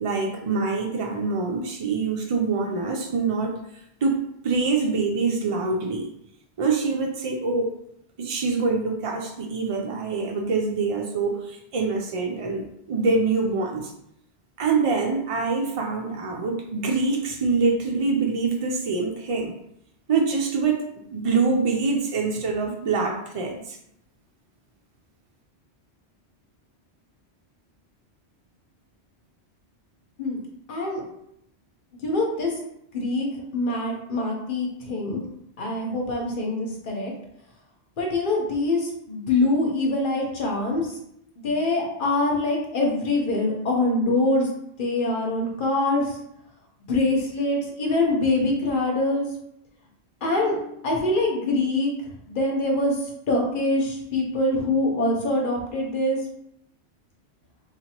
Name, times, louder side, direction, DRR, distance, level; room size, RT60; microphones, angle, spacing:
voice 1, 0.0-3.5 4.0-6.1 6.6-7.7 8.2-13.9 14.6-19.5 20.1-20.8 21.1-23.8, right 4 dB, 60° right, 1 dB, 0.3 m, -25 dB
voice 2, 30.7-31.0 32.0-32.5 32.9-33.3 33.5-35.2 35.6-37.1 38.0-40.9 41.4-44.5 44.8-46.1 46.9-49.3 50.2-51.9 52.3-53.0 53.3-56.2, left 2 dB, 50° left, -1 dB, 1.0 m, -24 dB
4.1 x 2.9 x 2.9 m, 0.76 s
omnidirectional pair, 1.1 m